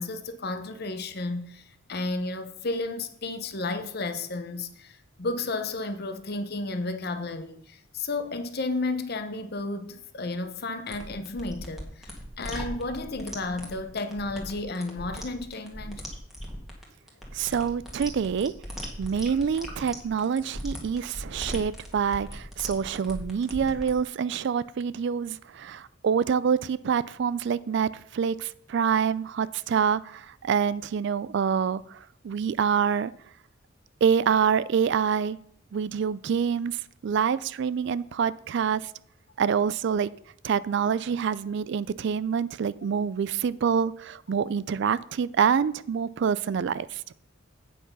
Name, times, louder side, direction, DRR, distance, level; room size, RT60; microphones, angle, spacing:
voice 1, 0.0-16.0, left 2 dB, 50° left, 0.8 m, -32 dB
sound 1, 10.9-23.9, equal, ahead, 1.6 m, -39 dB
voice 2, 17.3-18.5 19.0-33.1 34.0-35.4 35.7-38.9 39.4-40.1 40.4-47.0, right 7 dB, 60° right, 0.3 m, -26 dB
8.5 x 5.9 x 5.5 m
head